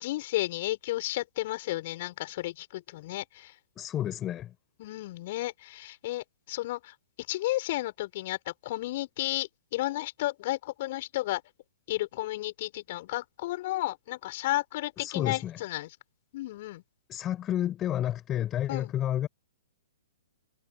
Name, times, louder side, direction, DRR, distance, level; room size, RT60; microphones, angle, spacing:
voice 1, 0.0-3.6 4.8-6.9 7.3-11.4 11.9-16.0 16.3-16.8 18.7-18.9, left 17 dB, 45° left, 7.3 m, -33 dB
voice 2, 3.8-4.5 15.0-15.6 17.1-19.3, left 11 dB, 25° left, 6.5 m, -30 dB
figure-of-eight pair, 120°, 0 cm